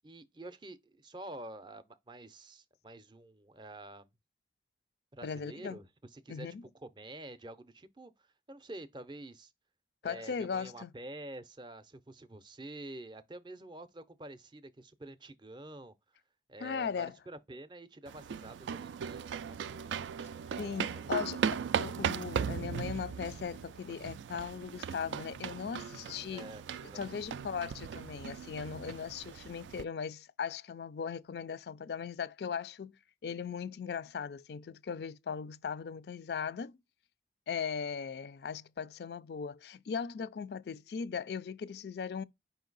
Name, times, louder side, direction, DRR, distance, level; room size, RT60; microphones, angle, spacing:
voice 1, 0.0-4.1 5.1-9.5 10.0-15.9 16.5-20.3 21.0-21.3 26.3-27.2, right 1 dB, 25° right, 0.5 m, -48 dB
voice 2, 5.2-5.8 6.3-6.6 10.0-10.9 16.6-17.1 20.6-26.5 26.9-36.8 37.5-42.2, left 6 dB, 65° left, 0.3 m, -38 dB
sound 1, 18.1-29.8, right 7 dB, 85° right, 0.3 m, -38 dB
5.1 x 2.7 x 3.9 m
head